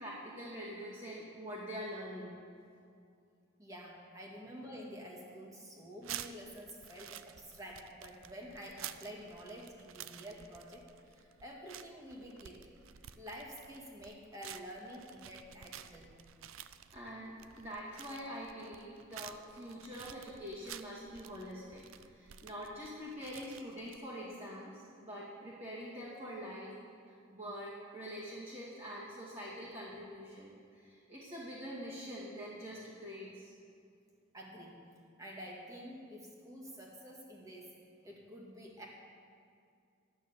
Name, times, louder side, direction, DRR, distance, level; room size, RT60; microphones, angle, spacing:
voice 1, 0.0-2.4 16.9-26.7 27.1-33.5, equal, 35° right, -9 dB, 2.4 m, -45 dB
voice 2, 3.6-12.6 13.2-16.1 34.3-34.8 35.2-37.7 38.0-38.9, equal, 15° right, -2 dB, 2.0 m, -49 dB
sound 1, 6.0-24.0, right 10 dB, 90° right, 0.5 m, -51 dB
12.0 x 9.1 x 7.1 m, 2.4 s
head